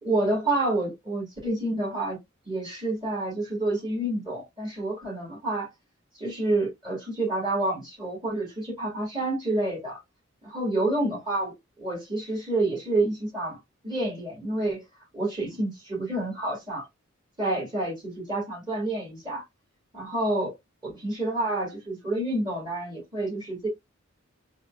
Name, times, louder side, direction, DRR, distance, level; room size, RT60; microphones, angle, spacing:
voice 1, 0.0-2.2 2.5-5.7 6.1-10.0 10.4-13.6 13.8-14.8 15.1-16.9 17.4-19.4 19.9-20.5 20.8-23.7, right 2 dB, 25° right, 2.2 m, -28 dB
4.3 x 2.4 x 2.5 m
head